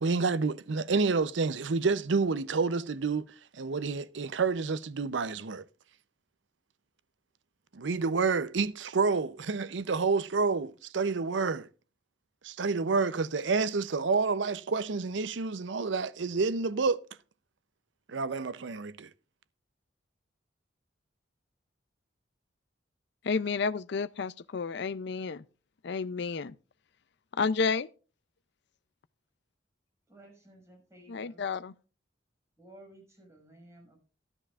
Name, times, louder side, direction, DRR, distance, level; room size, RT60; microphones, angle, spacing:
voice 1, 0.0-3.3 3.5-5.6 7.7-11.7 12.4-17.0 18.1-19.1, right 4 dB, 75° right, 0.6 m, -29 dB
voice 2, 23.2-25.4 25.8-26.6 27.3-27.9 31.1-31.7, left 5 dB, 65° left, 0.5 m, -31 dB
voice 3, 30.1-31.5 32.6-34.0, right 1 dB, 15° right, 6.1 m, -55 dB
13.5 x 12.5 x 2.4 m
head